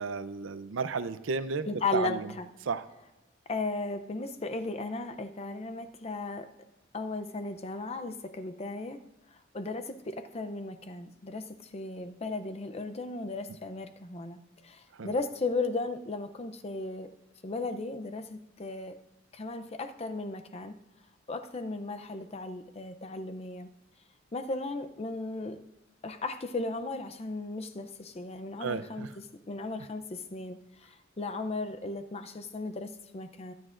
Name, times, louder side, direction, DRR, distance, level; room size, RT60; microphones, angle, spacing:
voice 1, 0.0-2.3 2.7-2.9 15.0-15.1 28.6-29.1, right 4 dB, 75° right, 13 dB, 0.6 m, -33 dB
voice 2, 1.7-2.5 3.5-6.5 6.9-9.0 9.5-17.1 17.4-19.0 19.3-20.8 21.3-23.7 24.3-25.6 26.0-29.1 29.5-33.5, left 3 dB, 30° left, 9 dB, 0.6 m, -36 dB
22.0 x 9.7 x 2.5 m, 1.0 s
head